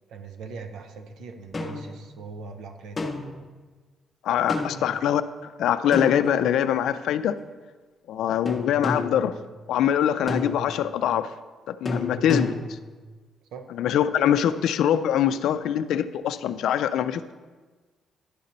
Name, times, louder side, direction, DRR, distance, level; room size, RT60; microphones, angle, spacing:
voice 1, 0.1-3.1 4.6-4.7 13.5-13.7, right 4 dB, 80° right, 6 dB, 0.5 m, -40 dB
sound 1, 1.5-2.0 3.0-3.5 4.5-4.9 5.9-6.8 8.4-9.3 10.3-10.8 11.8-12.8, left 2 dB, 25° left, 0.7 m, -30 dB
voice 2, 4.2-5.2 5.6-7.4 8.1-9.4 9.7-11.3 11.7-12.5 13.8-17.3, left 10 dB, 80° left, 12 dB, 0.3 m, -23 dB
11.0 x 3.9 x 4.2 m, 1.3 s
cardioid pair, 90°, 0 cm